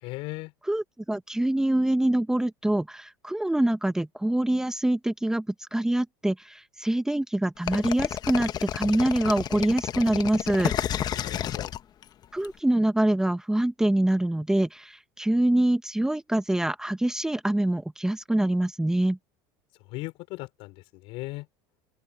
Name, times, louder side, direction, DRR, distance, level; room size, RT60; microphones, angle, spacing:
voice 1, 0.0-0.5 11.1-11.7 19.9-20.8 21.0-21.5, left 22 dB, 65° left, 5.4 m, -37 dB
voice 2, 0.6-5.4 5.7-10.7 12.3-19.2, right 1 dB, 5° right, 1.3 m, -25 dB
sound 1, 7.7-12.5, left 10 dB, 40° left, 1.2 m, -30 dB
open air
supercardioid pair, 105°, 10 cm